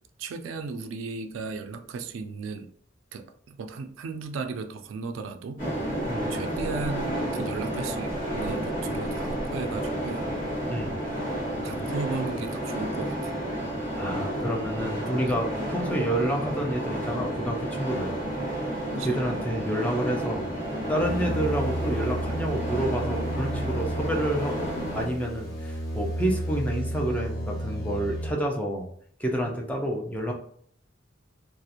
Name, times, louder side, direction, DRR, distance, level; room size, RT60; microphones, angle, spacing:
voice 1, 0.2-2.7 3.1-5.6 6.3-10.3 11.6-13.4 15.3-15.4 18.9-19.2, right 4 dB, 85° right, 7 dB, 0.3 m, -35 dB
sound 1, 5.6-25.1, right 1 dB, 45° left, 1.4 m, -31 dB
voice 2, 14.0-18.1 19.0-20.5 20.9-24.7 24.9-28.9 29.2-30.3, right 1 dB, 5° left, 0 dB, 0.4 m, -29 dB
sound 2, 21.0-28.3, right 1 dB, 75° left, 0.9 m, -32 dB
2.4 x 2.0 x 2.8 m, 0.62 s
head